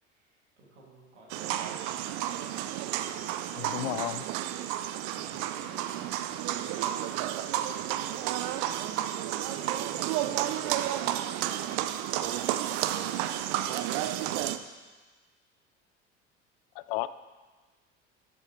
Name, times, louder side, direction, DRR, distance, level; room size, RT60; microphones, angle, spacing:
voice 1, 0.0-2.1 2.7-3.3 5.0-6.3 6.5-8.4 9.3-11.4 13.9-14.6, right 2 dB, 75° right, -3 dB, 2.6 m, -54 dB
sound 1, 1.3-14.6, right 12 dB, 55° right, 0.6 m, -31 dB
voice 2, 3.5-4.2 16.8-17.1, left 17 dB, 55° left, 15 dB, 0.4 m, -33 dB
12.5 x 7.5 x 3.2 m, 1.3 s
figure-of-eight pair, 65°, 36 cm